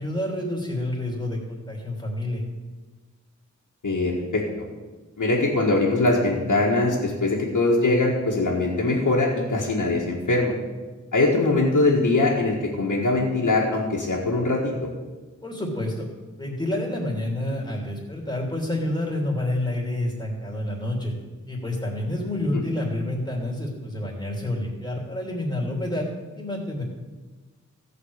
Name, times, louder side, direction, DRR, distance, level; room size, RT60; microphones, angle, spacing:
voice 1, 0.0-2.4 15.4-16.1 16.4-21.1 21.5-26.1 26.3-26.8, left 1 dB, 15° left, -2 dB, 3.1 m, -28 dB
voice 2, 3.8-4.4 5.2-10.6 11.1-14.9, left 2 dB, 80° left, -5 dB, 1.8 m, -22 dB
14.5 x 5.2 x 8.1 m, 1.3 s
wide cardioid pair, 50°, 30 cm